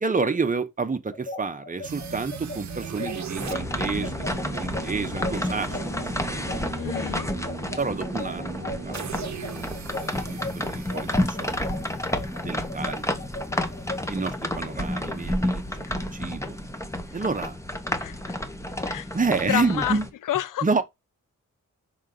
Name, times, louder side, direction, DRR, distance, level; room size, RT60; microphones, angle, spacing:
voice 1, 0.0-6.6 7.8-9.3 10.3-11.7 12.4-13.2 14.1-16.6 17.1-17.6 19.1-20.1 20.6-20.8, right 4 dB, 25° right, 0.9 m, -29 dB
sound 1, 1.1-10.5 10.9-14.0, left 2 dB, 40° left, 2.8 m, -36 dB
sound 2, 1.8-12.8, right 7 dB, 60° right, 0.9 m, -39 dB
sound 3, 3.4-20.1, left 1 dB, 10° left, 1.0 m, -30 dB
voice 2, 6.8-7.3 18.0-18.4 18.8-19.1 19.4-20.0 20.3-20.6, left 12 dB, 80° left, 0.5 m, -28 dB
6.3 x 4.0 x 3.8 m
wide cardioid pair, 130°, 31 cm